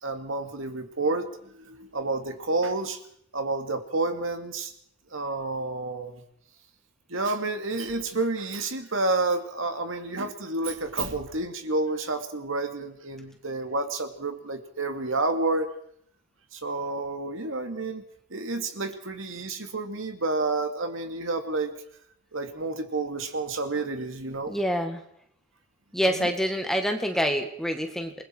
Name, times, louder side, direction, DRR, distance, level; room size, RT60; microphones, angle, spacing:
voice 1, 0.0-3.0 3.3-4.7 5.1-6.2 7.1-15.8 16.5-18.0 18.3-21.7 22.3-24.5 26.2-26.3, right 3 dB, 90° right, 6 dB, 2.4 m, -30 dB
voice 2, 24.5-25.0 25.9-28.1, equal, ahead, 4 dB, 1.9 m, -26 dB
28.0 x 20.5 x 4.6 m, 0.70 s
head